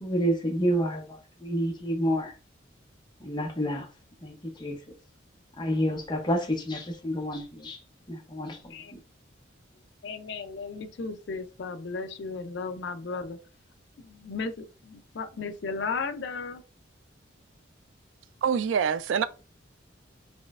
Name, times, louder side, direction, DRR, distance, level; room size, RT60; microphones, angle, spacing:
voice 1, 0.0-2.3 3.2-3.9 4.2-4.8 5.6-7.8 8.1-9.0, equal, 25° left, 0.7 m, -29 dB
voice 2, 10.0-13.4 14.0-16.6, left 4 dB, 60° left, 0.4 m, -35 dB
voice 3, 18.4-19.3, right 7 dB, 75° right, 0.3 m, -25 dB
4.2 x 3.1 x 2.4 m
head